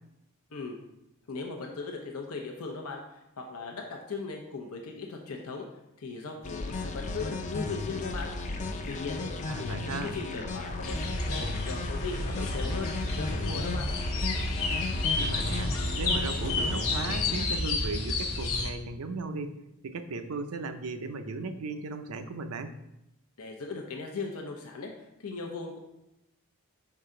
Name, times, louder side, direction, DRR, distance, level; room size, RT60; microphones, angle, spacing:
voice 1, 1.3-3.0 3.4-5.6 6.0-8.3 8.8-9.3 9.6-12.9 13.2-13.9 23.4-24.9 25.2-25.8, left 4 dB, 85° left, 2 dB, 0.8 m, -38 dB
sound 1, 6.4-17.5, left 3 dB, 35° left, 0.5 m, -35 dB
voice 2, 9.5-10.2 15.2-19.6 19.8-22.8, right 3 dB, 80° right, 9 dB, 0.5 m, -36 dB
sound 2, 10.8-18.7, left 2 dB, 70° left, 1.1 m, -31 dB
5.5 x 4.7 x 3.7 m, 0.88 s
head